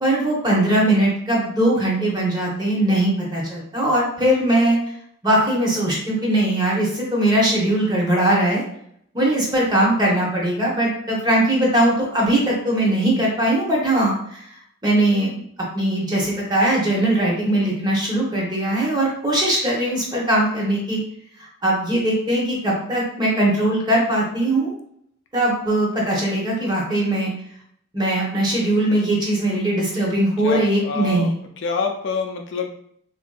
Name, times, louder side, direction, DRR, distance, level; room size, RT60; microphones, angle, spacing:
voice 1, 0.0-4.8 5.2-8.6 9.1-14.5 14.8-15.4 15.7-21.0 21.4-24.7 25.3-27.3 27.9-31.4, right 1 dB, 20° right, -3 dB, 0.7 m, -20 dB
voice 2, 30.4-31.3 31.6-32.7, left 4 dB, 55° left, 3 dB, 0.3 m, -26 dB
3.6 x 2.5 x 2.2 m, 0.69 s
head